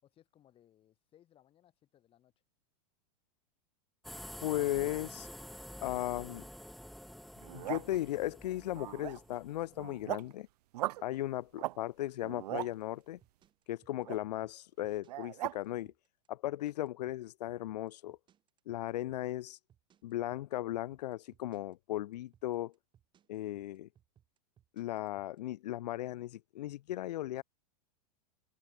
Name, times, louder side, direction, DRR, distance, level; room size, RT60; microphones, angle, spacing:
voice 1, 0.0-2.3, left 11 dB, 25° left, 6.1 m, -66 dB
sound 1, 4.0-10.1, equal, ahead, 0.6 m, -49 dB
voice 2, 4.4-5.3 5.8-6.5 7.5-10.5 11.0-13.2 13.7-15.9 16.3-18.2 18.7-19.6 20.0-22.7 23.3-23.9 24.7-27.4, left 14 dB, 90° left, 0.5 m, -36 dB
sound 2, 7.4-8.0 8.7-9.4 9.7-10.3 10.7-11.0 11.5-11.8 12.1-12.7 14.0-14.2 15.1-15.6, right 16 dB, 75° right, 0.4 m, -38 dB
sound 3, 12.6-25.4, right 10 dB, 25° right, 4.4 m, -67 dB
supercardioid pair, 145°, 20 cm